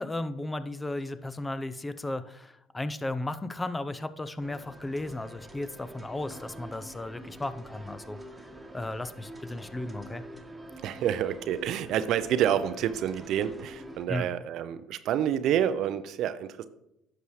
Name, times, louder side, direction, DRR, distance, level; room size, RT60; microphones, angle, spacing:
voice 1, 0.0-8.2 8.7-10.2 14.1-14.3, left 2 dB, 15° left, 12 dB, 0.6 m, -35 dB
sound 1, 4.4-14.0, right 1 dB, 10° right, 1.4 m, -46 dB
voice 2, 10.8-16.6, right 10 dB, 60° right, 13 dB, 0.6 m, -28 dB
11.0 x 6.8 x 3.2 m, 0.83 s
hypercardioid pair, 60°, 0 cm